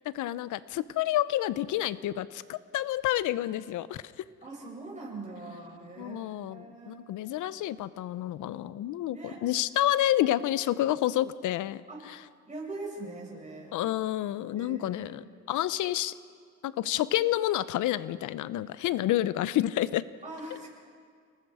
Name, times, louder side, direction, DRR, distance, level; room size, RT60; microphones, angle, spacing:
voice 1, 0.0-4.0 6.0-12.2 13.7-16.1 16.6-20.0, left 13 dB, 80° left, 16 dB, 0.7 m, -29 dB
voice 2, 4.4-7.0 9.1-9.4 11.9-12.0 12.4-13.7 14.6-15.3 20.2-20.7, right 2 dB, 25° right, -3 dB, 7.6 m, -42 dB
29.5 x 20.0 x 4.9 m, 2.1 s
cardioid pair, 90°, 30 cm